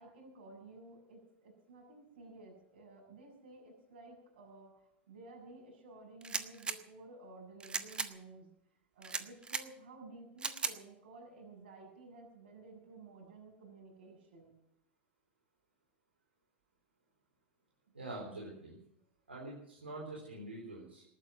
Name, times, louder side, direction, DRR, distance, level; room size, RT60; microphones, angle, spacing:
voice 1, 0.0-8.5 8.9-14.5, right 3 dB, 60° right, 1 dB, 7.0 m, -54 dB
sound 1, 6.2-6.8 7.6-8.1 9.0-9.6 10.4-10.8, right 4 dB, 15° right, 1.2 m, -37 dB
voice 2, 17.9-18.7 19.3-21.0, right 2 dB, 80° right, -3 dB, 4.1 m, -45 dB
19.5 x 9.1 x 7.6 m, 0.73 s
figure-of-eight pair, 85°, 6 cm